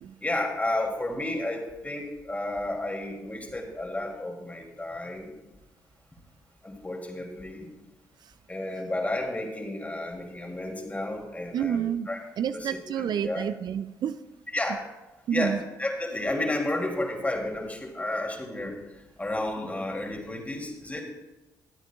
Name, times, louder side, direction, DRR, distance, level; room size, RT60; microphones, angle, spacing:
voice 1, 0.2-5.3 6.6-7.7 8.5-12.2 12.5-13.4 14.5-14.9 15.3-21.0, left 1 dB, 20° left, 1 dB, 3.0 m, -32 dB
voice 2, 11.5-12.1 12.4-14.2 15.3-15.6, right 9 dB, 60° right, 12 dB, 0.4 m, -29 dB
21.5 x 8.0 x 2.4 m, 1.1 s
supercardioid pair, 55°, 8 cm